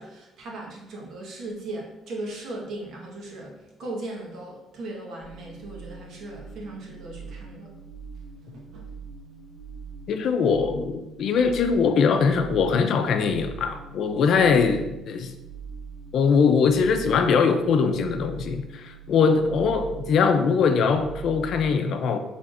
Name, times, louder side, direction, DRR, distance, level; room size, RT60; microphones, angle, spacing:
voice 1, 0.0-7.7 8.4-8.9, right 2 dB, 70° right, -2 dB, 1.3 m, -38 dB
sound 1, 5.2-21.6, right 6 dB, 90° right, 0.9 m, -42 dB
voice 2, 10.1-15.3 16.1-22.2, left 5 dB, 65° left, 7 dB, 0.5 m, -22 dB
5.7 x 3.5 x 2.5 m, 0.92 s
cardioid pair, 90°, 0 cm